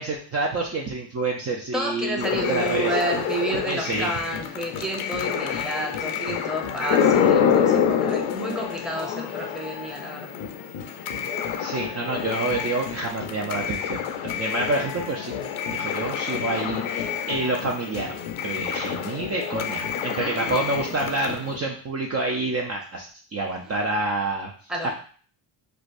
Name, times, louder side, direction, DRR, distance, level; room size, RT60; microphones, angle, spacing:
voice 1, 0.0-2.9 3.7-4.1 11.6-15.3 15.7-18.2 18.4-24.5 24.8-24.9, right 2 dB, 30° right, 0 dB, 0.5 m, -28 dB
voice 2, 1.7-10.3 20.1-20.9 24.7-24.9, right 1 dB, ahead, 0 dB, 0.8 m, -30 dB
sound 1, 2.2-21.6, left 8 dB, 70° left, 0.6 m, -27 dB
4.4 x 2.1 x 2.5 m, 0.43 s
cardioid pair, 80°, 50 cm